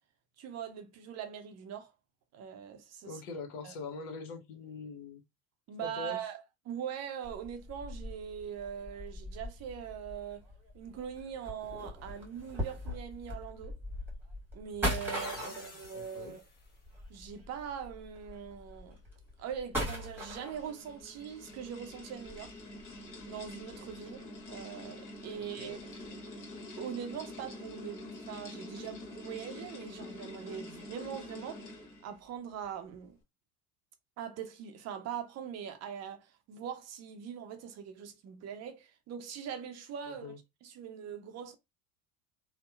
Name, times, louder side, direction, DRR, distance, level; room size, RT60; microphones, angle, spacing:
voice 1, 0.4-1.9 2.3-3.1 3.6-3.7 5.7-10.4 10.7-13.7 14.5-16.4 17.1-19.0 19.4-22.5 23.3-25.9 26.8-31.6 32.0-33.2 34.2-40.3 40.6-41.6, right 8 dB, 40° right, 0.6 m, -42 dB
voice 2, 3.0-5.2 5.8-6.2 15.0-16.4 25.4-25.8 40.0-40.4, left 4 dB, 65° left, 0.9 m, -44 dB
sound 1, 7.2-21.0 21.6-24.1 24.4-24.5 25.1-25.4 25.7-26.1, equal, 5° right, 1.3 m, -41 dB
sound 2, 15.2-17.7, left 3 dB, 20° left, 1.1 m, -53 dB
sound 3, 20.0-32.2, left 1 dB, 45° left, 1.2 m, -46 dB
2.9 x 2.1 x 2.2 m
hypercardioid pair, 80°, 42 cm